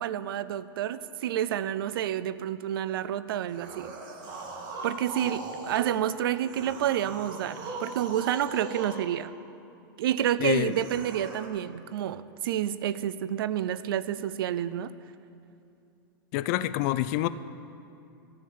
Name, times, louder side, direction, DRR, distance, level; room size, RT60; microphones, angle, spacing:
voice 1, 0.0-3.9 4.8-9.4 10.0-14.9, right 11 dB, 75° right, 16 dB, 0.5 m, -29 dB
sound 1, 3.5-6.0 6.4-9.0 10.6-11.5, right 3 dB, 35° right, 1.6 m, -40 dB
voice 2, 10.4-10.7 16.3-17.3, left 15 dB, 50° left, 14 dB, 0.4 m, -27 dB
13.5 x 6.5 x 8.5 m, 2.7 s
supercardioid pair, 140°, 12 cm